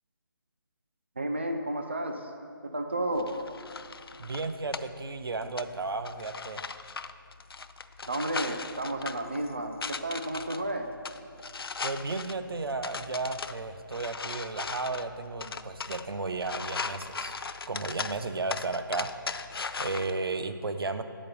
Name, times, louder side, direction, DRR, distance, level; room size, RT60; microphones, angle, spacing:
voice 1, 1.2-2.3 2.6-3.4 8.1-10.9, right 1 dB, 30° right, 5 dB, 0.4 m, -32 dB
sound 1, 3.1-20.1, left 4 dB, 90° left, 0.4 m, -39 dB
voice 2, 4.2-6.6 11.8-17.3 17.7-19.1 19.8-21.0, right 3 dB, 90° right, 9 dB, 0.6 m, -34 dB
6.7 x 5.2 x 7.0 m, 2.3 s
hypercardioid pair, 180°, 12 cm